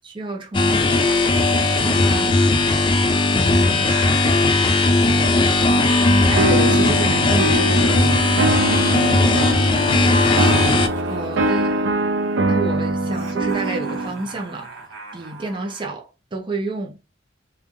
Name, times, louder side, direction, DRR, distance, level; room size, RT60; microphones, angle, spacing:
voice 1, 0.0-1.0 1.8-2.4 3.3-4.0 6.1-8.1 11.0-11.8 12.4-14.7 15.1-17.0, right 2 dB, 25° right, 0.6 m, -29 dB
sound 1, 0.5-10.9, left 2 dB, 25° left, 0.3 m, -17 dB
Laughter, 1.0-4.4 5.3-8.6 9.9-11.9 13.0-15.9, right 3 dB, 85° right, 1.1 m, -39 dB
sound 2, 6.3-14.1, right 1 dB, 70° right, 0.4 m, -23 dB
3.1 x 2.2 x 2.4 m
head